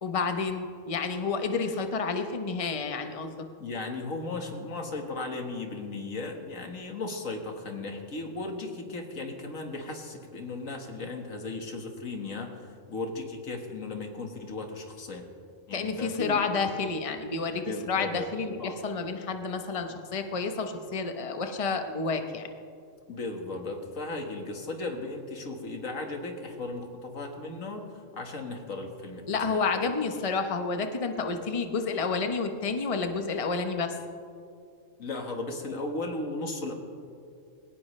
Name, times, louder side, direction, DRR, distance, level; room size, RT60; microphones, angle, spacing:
voice 1, 0.0-3.5 15.7-22.5 29.3-33.9, left 4 dB, 30° left, 6 dB, 0.9 m, -30 dB
voice 2, 3.6-15.2 15.7-16.4 17.6-18.3 18.6-18.8 23.1-27.9 28.1-29.8 35.0-36.7, left 2 dB, 90° left, 3 dB, 2.1 m, -36 dB
21.0 x 18.0 x 3.3 m, 2.4 s
omnidirectional pair, 1.3 m